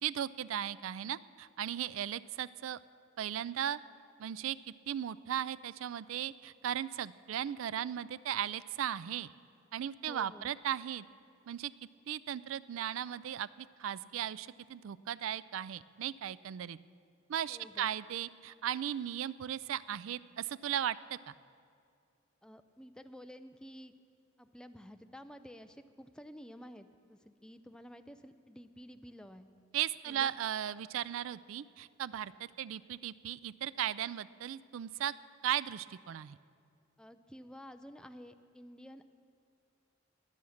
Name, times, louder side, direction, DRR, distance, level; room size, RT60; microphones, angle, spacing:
voice 1, 0.0-2.8 3.2-3.8 4.2-4.6 4.9-9.3 9.7-11.1 11.5-11.7 12.1-16.8 17.3-21.3 29.7-35.1 35.4-36.4, right 10 dB, 75° right, 18 dB, 0.3 m, -37 dB
voice 2, 10.1-10.5 17.5-17.9 22.4-23.9 24.4-29.5 30.1-30.3 37.0-39.1, equal, 5° left, 9 dB, 0.4 m, -51 dB
21.0 x 7.2 x 6.4 m, 2.3 s
head